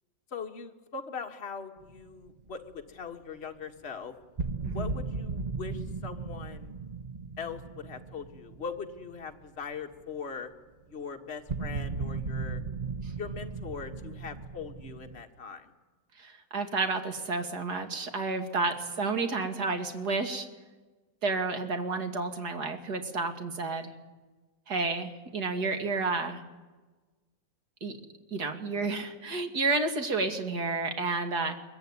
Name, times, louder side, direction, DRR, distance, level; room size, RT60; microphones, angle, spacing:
voice 1, 0.3-4.1 4.7-6.7 7.4-10.5 10.9-12.6 13.2-15.7, left 6 dB, 40° left, 4 dB, 1.9 m, -40 dB
sound 1, 1.8-2.8 4.4-9.4 9.7-10.0 11.5-15.2, right 4 dB, 35° right, 0.8 m, -36 dB
voice 2, 4.6-4.9 16.2-20.5 21.2-23.9 24.7-26.4 27.8-28.0 28.3-31.6, right 3 dB, 70° right, 6 dB, 2.9 m, -31 dB
23.0 x 22.5 x 9.8 m, 1.3 s
omnidirectional pair, 1.8 m